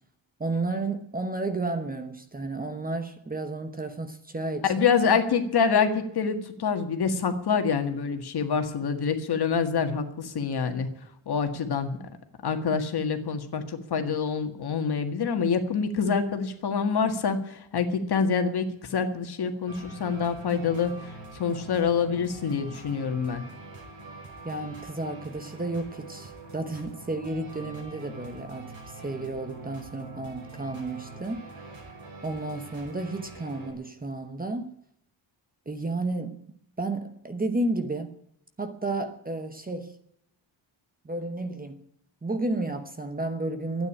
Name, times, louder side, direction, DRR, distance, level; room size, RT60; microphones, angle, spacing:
voice 1, 0.4-4.7 24.4-31.4 32.2-34.7 35.7-38.1 38.6-40.0 41.0-41.8 42.2-43.9, right 2 dB, 20° right, 1.0 m, -32 dB
voice 2, 4.7-10.9 11.2-12.0 12.4-23.4, left 6 dB, 50° left, 1.8 m, -26 dB
sound 1, 19.7-33.7, right 3 dB, 75° right, 5.9 m, -44 dB
12.0 x 9.3 x 9.9 m
wide cardioid pair, 145°, 48 cm